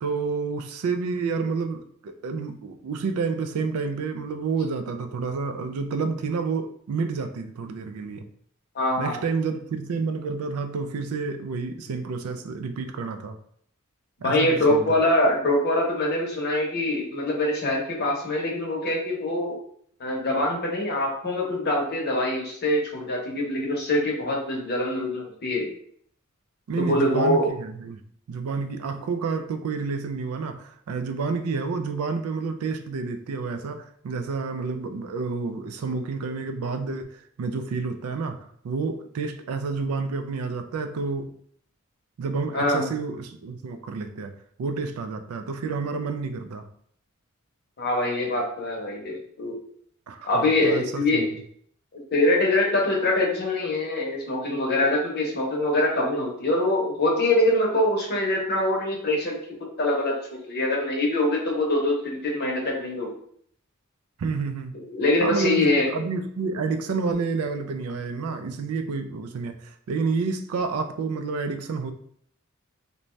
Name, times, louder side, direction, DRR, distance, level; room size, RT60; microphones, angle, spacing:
voice 1, 0.0-8.3 9.0-13.4 14.2-15.0 26.7-28.0 28.3-38.4 38.6-41.3 42.2-44.3 44.6-46.7 50.1-51.3 64.2-64.7 65.2-71.9, right 4 dB, 75° right, 7 dB, 0.4 m, -29 dB
voice 2, 8.7-9.2 14.2-19.6 20.0-25.6 26.8-27.5 42.5-42.9 47.8-49.5 50.2-51.2 52.1-59.4 59.8-60.1 60.5-63.1 64.9-66.0, left 1 dB, 50° left, -1 dB, 0.8 m, -24 dB
2.6 x 2.2 x 3.1 m, 0.64 s
head